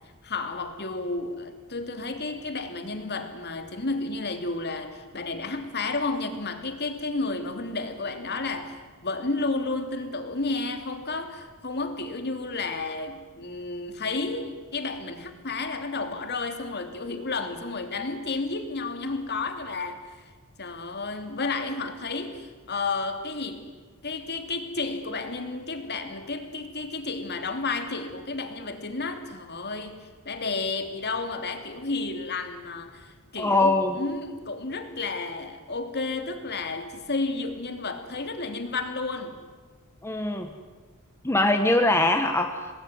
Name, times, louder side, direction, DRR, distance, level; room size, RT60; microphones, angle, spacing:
voice 1, 0.2-8.7 9.0-20.1 20.6-23.7 24.0-39.3, left 3 dB, 50° left, 6 dB, 2.9 m, -32 dB
voice 2, 33.4-34.0 40.0-40.5 41.2-42.7, left 2 dB, 10° left, 5 dB, 1.3 m, -22 dB
26.0 x 19.5 x 9.6 m, 1.4 s
head